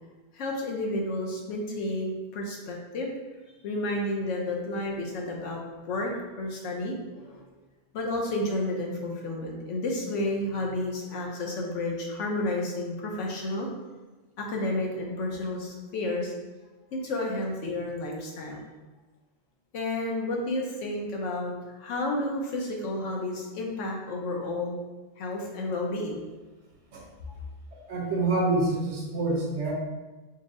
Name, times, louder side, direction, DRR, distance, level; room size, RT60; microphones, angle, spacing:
voice 1, 0.3-3.1 3.6-5.6 5.8-6.1 6.4-7.4 7.9-13.7 14.4-16.3 16.9-18.7 19.7-21.5 21.8-24.8 25.2-26.2, left 2 dB, 90° left, 0 dB, 1.1 m, -31 dB
voice 2, 27.7-29.7, right 2 dB, 70° right, -3 dB, 1.2 m, -27 dB
4.5 x 2.1 x 3.6 m, 1.2 s
omnidirectional pair, 1.2 m